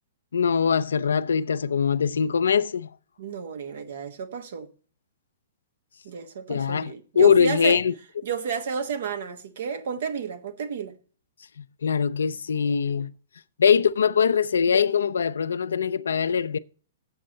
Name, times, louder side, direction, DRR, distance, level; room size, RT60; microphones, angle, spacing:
voice 1, 0.3-2.9 6.5-7.9 11.6-13.1 13.6-16.6, left 7 dB, 85° left, 0.5 m, -22 dB
voice 2, 3.2-4.7 6.0-7.8 8.2-11.0, right 7 dB, 70° right, 1.2 m, -31 dB
7.8 x 5.3 x 7.6 m
hypercardioid pair, 130°, 0 cm